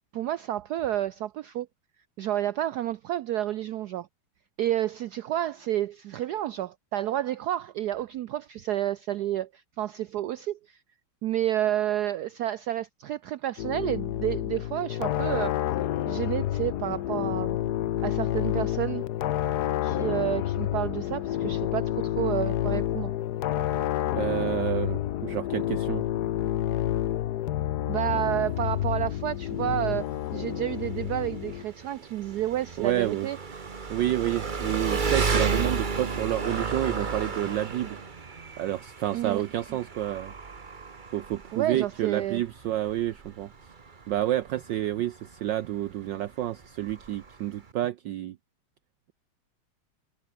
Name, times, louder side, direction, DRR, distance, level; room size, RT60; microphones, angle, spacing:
voice 1, 0.1-1.7 2.2-4.1 4.6-10.8 11.2-15.6 16.1-17.6 18.0-19.0 19.8-23.1 27.9-33.4 39.1-39.5 41.5-42.4, right 12 dB, 85° right, 0.8 m, -30 dB
sound 1, 13.6-31.6, left 12 dB, 65° left, 1.1 m, -29 dB
voice 2, 24.1-26.0 32.8-33.3 33.9-38.0 38.6-40.3 41.1-43.5 44.1-48.4, right 13 dB, 65° right, 1.3 m, -29 dB
Engine, 28.1-47.7, right 5 dB, 30° right, 1.1 m, -34 dB
omnidirectional pair, 2.3 m